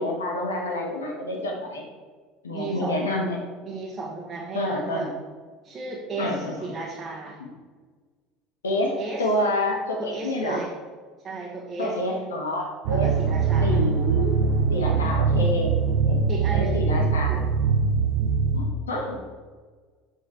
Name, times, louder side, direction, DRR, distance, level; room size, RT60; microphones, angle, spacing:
voice 1, 0.0-1.8 2.4-3.4 4.5-5.1 6.1-6.7 7.4-7.5 8.6-10.6 11.8-13.1 13.6-14.3 14.7-15.7 16.0-16.2 16.5-17.4 18.5-19.3, left 1 dB, 80° left, 1 dB, 1.5 m, -28 dB
voice 2, 2.5-3.2 3.6-5.1 5.6-7.4 8.9-9.3 10.0-10.7 11.2-12.0 12.9-13.8 16.3-17.4, right 3 dB, 30° right, -1 dB, 1.3 m, -34 dB
sound 1, 12.9-18.6, right 5 dB, 60° right, 0.7 m, -22 dB
7.9 x 6.1 x 4.7 m, 1.5 s
figure-of-eight pair, 65°, 0 cm